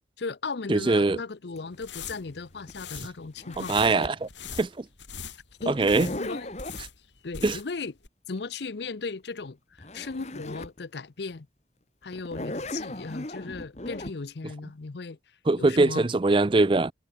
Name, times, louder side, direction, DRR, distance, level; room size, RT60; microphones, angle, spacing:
voice 1, 0.2-3.8 5.6-6.5 7.2-7.9 8.3-11.5 12.0-15.2 15.6-16.1, left 4 dB, 70° left, 0.7 m, -36 dB
voice 2, 0.7-1.2 3.7-4.3 4.6-4.7 5.7-6.1 7.4-7.6 15.5-16.9, right 3 dB, 25° right, 0.4 m, -22 dB
Zipper (clothing), 1.6-4.3 5.6-6.9 9.5-9.6 9.8-10.8 11.3-11.4 12.1-14.1, left 1 dB, 40° left, 2.0 m, -37 dB
sound 1, 1.7-7.8 8.0-8.1, left 6 dB, 85° left, 3.8 m, -42 dB
head